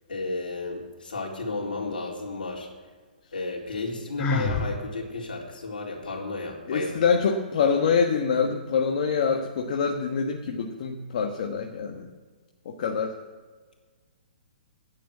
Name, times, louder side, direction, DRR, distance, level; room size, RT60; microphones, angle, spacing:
voice 1, 0.1-2.7 3.3-7.0, left 3 dB, 75° left, -1 dB, 4.0 m, -33 dB
Sigh, 4.2-4.7, left 3 dB, 25° left, 1.6 m, -25 dB
voice 2, 6.7-12.1 12.6-13.1, left 6 dB, 55° left, 2 dB, 1.4 m, -25 dB
11.5 x 9.0 x 8.4 m, 1.4 s
hypercardioid pair, 135°, 5 cm